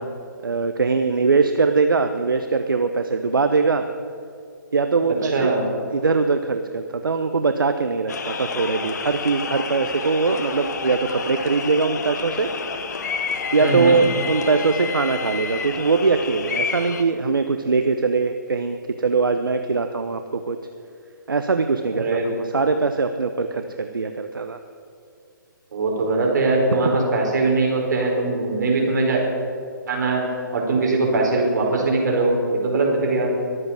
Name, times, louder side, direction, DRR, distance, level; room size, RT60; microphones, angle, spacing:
voice 1, 0.4-3.9 4.7-5.5 5.9-12.5 13.5-20.6 21.3-24.6, right 4 dB, 80° right, 8 dB, 0.9 m, -21 dB
voice 2, 5.2-5.6 13.6-14.0 21.9-22.3 25.7-29.2 29.9-33.3, right 3 dB, 60° right, 0 dB, 4.8 m, -21 dB
sound 1, 8.1-17.0, left 5 dB, 55° left, 1.5 m, -30 dB
23.0 x 8.1 x 7.3 m, 2.4 s
figure-of-eight pair, 140°, 11 cm